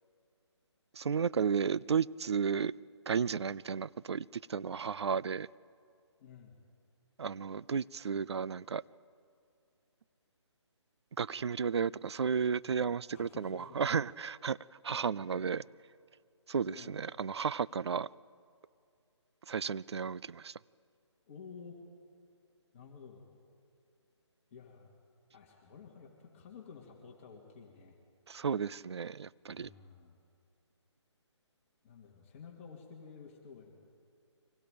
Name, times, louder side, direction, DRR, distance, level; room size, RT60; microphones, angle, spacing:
voice 1, 0.9-2.7 3.1-5.5 7.2-8.8 11.2-14.6 14.8-15.6 16.5-18.1 19.5-20.6 28.3-29.7, right 6 dB, 65° right, 20 dB, 0.5 m, -33 dB
voice 2, 6.2-6.6 13.1-13.9 14.9-15.0 15.4-15.5 16.7-17.0 21.3-21.8 22.7-23.2 24.5-24.9 25.3-28.0 29.4-30.2 31.8-33.7, left 6 dB, 25° left, 0 dB, 2.5 m, -52 dB
30.0 x 24.0 x 5.2 m, 2.3 s
hypercardioid pair, 160°, 15 cm